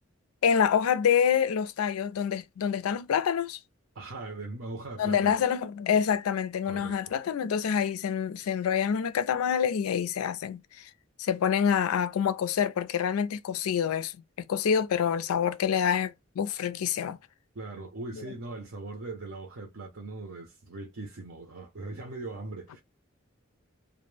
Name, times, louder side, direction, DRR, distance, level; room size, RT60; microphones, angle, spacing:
voice 1, 0.4-3.6 5.0-10.6 11.2-17.2 18.1-18.2, left 7 dB, 90° left, 0.4 m, -27 dB
voice 2, 4.0-5.5 6.6-7.1 17.5-22.8, right 2 dB, 65° right, 0.6 m, -40 dB
2.1 x 2.0 x 3.1 m
head